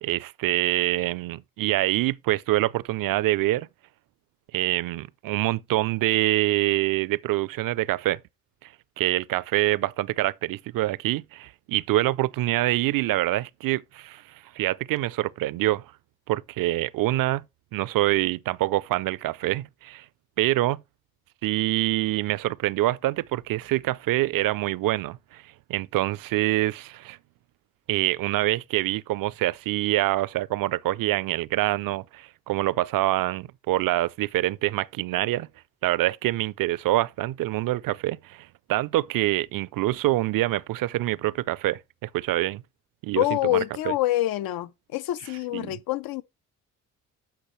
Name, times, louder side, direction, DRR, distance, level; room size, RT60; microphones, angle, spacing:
voice 1, 0.0-3.7 4.5-8.2 8.6-8.7 9.0-14.2 14.5-15.8 16.3-17.4 17.7-20.0 20.4-20.8 21.4-25.4 25.7-27.2 27.9-35.5 35.8-42.6 43.0-43.2 43.5-43.6 45.5-45.8, right 16 dB, 65° right, 0.6 m, -25 dB
voice 2, 43.2-46.2, left 15 dB, 75° left, 0.7 m, -26 dB
10.5 x 6.4 x 3.2 m
supercardioid pair, 55°, 36 cm